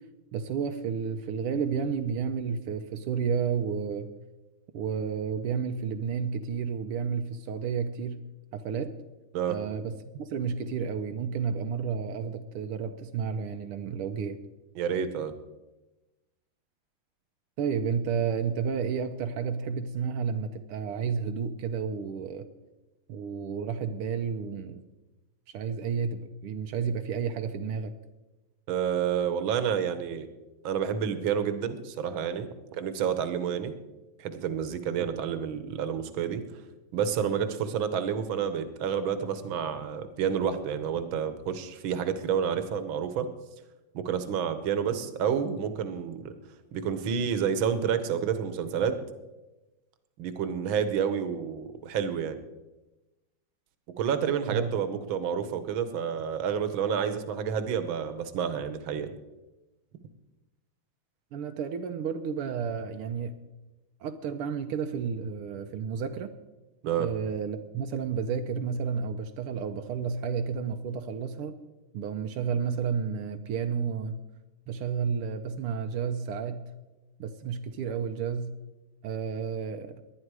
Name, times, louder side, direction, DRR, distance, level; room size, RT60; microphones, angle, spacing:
voice 1, 0.3-4.1 4.7-8.2 8.5-9.0 9.5-14.4 17.6-22.5 23.1-24.8 25.5-27.9 54.5-54.7 61.3-63.4 64.0-66.3 67.0-71.5 71.9-74.2 74.7-76.7 77.2-78.6 79.0-80.0, right 6 dB, 85° right, 6 dB, 1.7 m, -31 dB
voice 2, 14.8-15.3 28.7-30.3 30.6-33.7 34.2-36.4 36.9-43.3 43.9-46.3 46.7-49.0 50.2-52.4 54.0-59.1 66.8-67.1, right 7 dB, 70° right, 10 dB, 1.8 m, -29 dB
19.0 x 11.5 x 4.8 m, 1.1 s
omnidirectional pair, 2.4 m